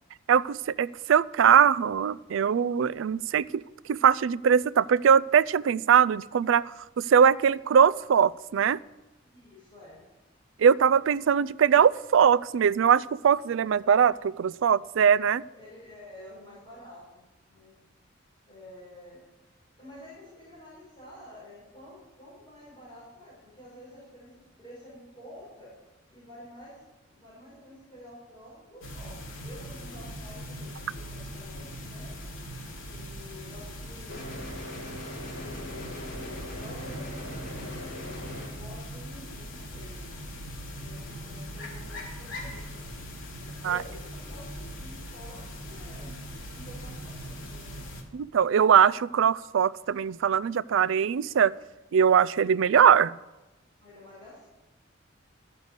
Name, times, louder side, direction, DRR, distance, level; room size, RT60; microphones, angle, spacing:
voice 1, 0.3-3.6 3.9-8.8 10.6-15.4 43.6-43.8 48.1-51.5 51.9-53.1, right 7 dB, 70° right, 19 dB, 0.3 m, -21 dB
voice 2, 9.2-10.1 15.5-17.7 18.5-19.2 19.8-25.7 26.1-26.8 27.1-32.1 32.9-34.5 35.4-40.0 40.7-42.9 43.4-46.2 46.5-47.8 53.8-54.5, left 1 dB, 25° left, -8 dB, 5.5 m, -49 dB
sound 1, 28.8-48.0, equal, 75° left, 2.7 m, -40 dB
sound 2, 34.1-38.5, left 1 dB, 55° left, 3.7 m, -40 dB
13.0 x 6.7 x 8.0 m, 1.0 s
head